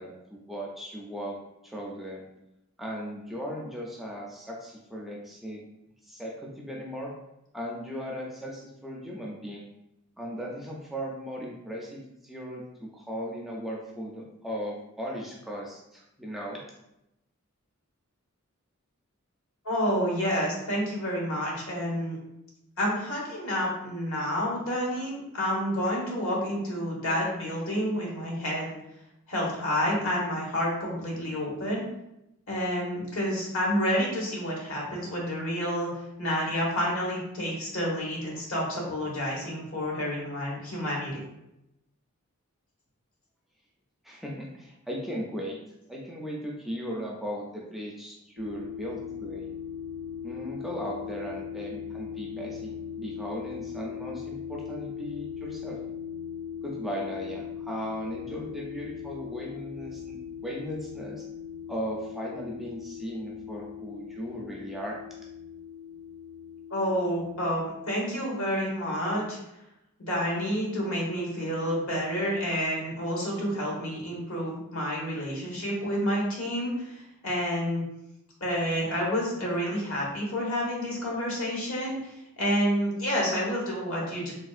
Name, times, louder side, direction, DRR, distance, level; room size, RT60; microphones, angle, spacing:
voice 1, 0.0-1.4 1.6-2.2 2.8-5.6 6.0-7.1 7.5-9.6 10.2-16.6 44.0-45.6 45.9-49.5 50.2-55.8 56.6-60.2 60.4-61.2 61.7-65.0, equal, ahead, -3 dB, 0.3 m, -37 dB
voice 2, 19.6-22.2 22.8-28.7 29.3-31.8 32.5-35.9 36.2-41.2 66.7-69.4 70.0-77.8 78.4-82.0 82.4-84.3, equal, 75° left, -3 dB, 1.1 m, -29 dB
sound 1, 48.4-67.7, left 7 dB, 85° right, 0.3 m, -39 dB
3.4 x 2.3 x 2.4 m, 0.86 s
head